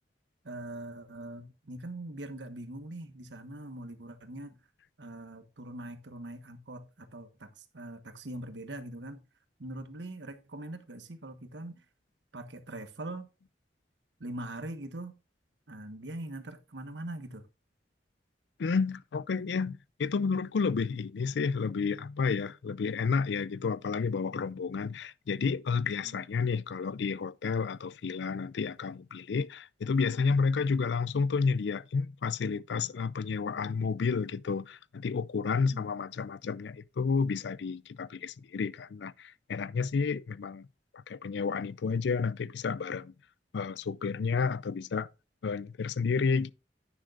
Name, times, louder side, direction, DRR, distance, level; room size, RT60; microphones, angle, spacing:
voice 1, 0.4-4.6 5.0-9.2 9.6-11.8 12.3-13.3 14.2-15.1 15.7-17.5 26.0-26.2 35.7-36.2, right 1 dB, 90° right, 1.3 m, -42 dB
voice 2, 18.6-40.7 41.1-43.1 43.5-45.1 45.4-46.5, left 5 dB, 75° left, 0.4 m, -31 dB
10.5 x 9.6 x 2.5 m
head